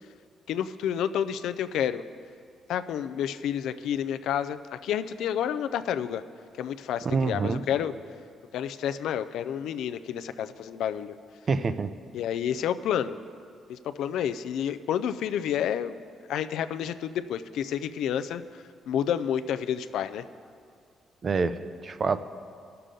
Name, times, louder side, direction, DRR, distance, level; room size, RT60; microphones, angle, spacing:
voice 1, 0.5-2.0 2.7-6.2 6.6-7.9 8.5-11.1 12.1-13.2 13.7-16.0 16.3-20.2, left 9 dB, 80° left, 11 dB, 0.4 m, -30 dB
voice 2, 7.0-7.6 11.5-11.9 21.2-22.2, right 4 dB, 35° right, 12 dB, 0.4 m, -26 dB
18.5 x 6.7 x 3.8 m, 2.3 s
cardioid pair, 140°, 0 cm